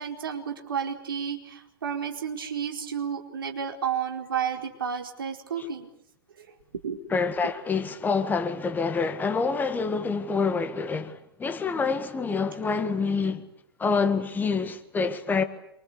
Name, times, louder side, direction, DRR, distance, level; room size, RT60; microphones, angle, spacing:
voice 1, 0.0-5.9 6.4-6.5 6.8-7.0, right 7 dB, 65° right, 4.7 m, -31 dB
voice 2, 7.1-13.5 13.8-15.4, left 4 dB, 15° left, 1.7 m, -27 dB
27.0 x 25.0 x 8.4 m
figure-of-eight pair, 100°, 13 cm